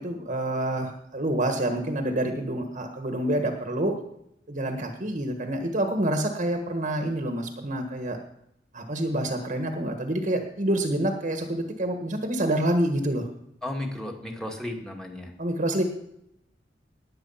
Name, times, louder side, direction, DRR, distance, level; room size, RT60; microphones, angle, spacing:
voice 1, 0.0-4.0 4.5-8.2 8.7-13.3 15.4-15.8, right 1 dB, 45° right, 5 dB, 1.5 m, -27 dB
voice 2, 13.6-15.3, left 1 dB, 5° left, 1 dB, 2.1 m, -34 dB
19.0 x 7.8 x 5.7 m, 0.76 s
head